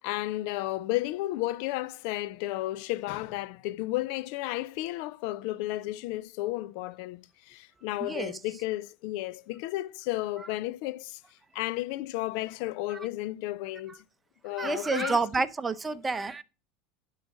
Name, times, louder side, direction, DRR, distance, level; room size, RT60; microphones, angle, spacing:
voice 1, 0.0-11.2 11.5-14.0 14.4-15.2, left 17 dB, 65° left, 0.4 m, -33 dB
voice 2, 8.0-8.3 14.6-16.4, right 4 dB, 20° right, 0.8 m, -29 dB
10.5 x 4.1 x 5.9 m
hypercardioid pair, 85°, 0 cm